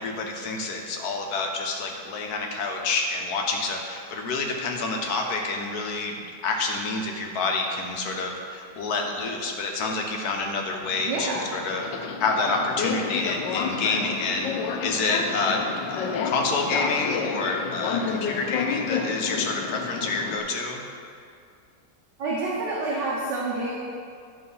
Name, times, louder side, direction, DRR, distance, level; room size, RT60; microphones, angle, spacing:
voice 1, 0.0-6.1 6.4-11.8 12.2-14.5 14.8-20.8, left 3 dB, 65° left, 1 dB, 1.4 m, -28 dB
Subway metro underground, 10.8-20.4, left 5 dB, 85° left, 1.3 m, -30 dB
voice 2, 11.0-11.5 22.2-23.7, right 2 dB, 75° right, -5 dB, 1.6 m, -28 dB
11.0 x 3.8 x 5.5 m, 2.3 s
omnidirectional pair, 1.9 m